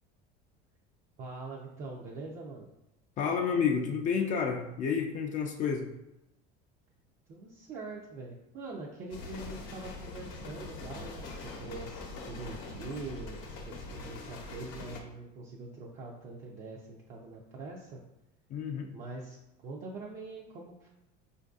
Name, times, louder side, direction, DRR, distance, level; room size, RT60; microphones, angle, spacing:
voice 1, 1.2-2.7 7.3-18.0 18.9-19.4 19.6-20.9, right 3 dB, 40° right, -3 dB, 0.5 m, -43 dB
voice 2, 3.2-5.8 18.5-18.9, left 6 dB, 40° left, 3 dB, 0.4 m, -30 dB
sound 1, 9.1-15.0, left 3 dB, 65° left, 0.8 m, -43 dB
4.4 x 2.5 x 2.4 m, 0.89 s
cardioid pair, 135°, 20 cm